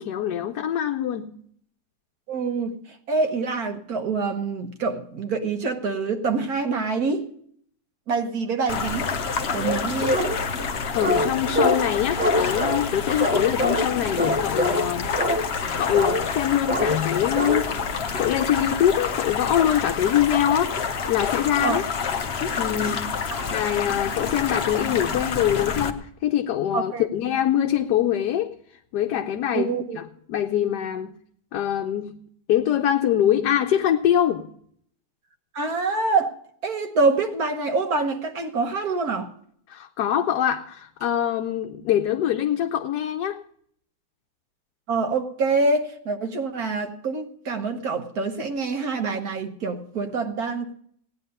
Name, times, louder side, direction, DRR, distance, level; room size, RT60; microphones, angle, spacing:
voice 1, 0.0-1.4 9.5-9.7 10.9-15.1 15.4-21.8 22.6-28.5 28.9-30.0 30.3-31.2 31.5-34.5 39.7-43.4, left 10 dB, 85° left, 1.3 m, -24 dB
voice 2, 2.3-2.8 3.1-7.3 8.1-9.1 9.5-10.4 21.6-21.8 23.7-23.8 26.7-27.0 29.5-30.0 35.5-36.3 36.6-39.3 44.9-50.7, right 4 dB, 65° right, 1.6 m, -26 dB
sound 1, 8.7-25.9, left 5 dB, 50° left, 1.0 m, -28 dB
sound 2, 9.6-10.4 11.0-11.9 12.2-12.9 13.2-13.9 14.2-14.9 15.2-15.5 15.9-16.3 16.7-17.0 17.4-17.7, left 1 dB, 10° right, 0.5 m, -24 dB
16.5 x 9.7 x 5.4 m
omnidirectional pair, 1.7 m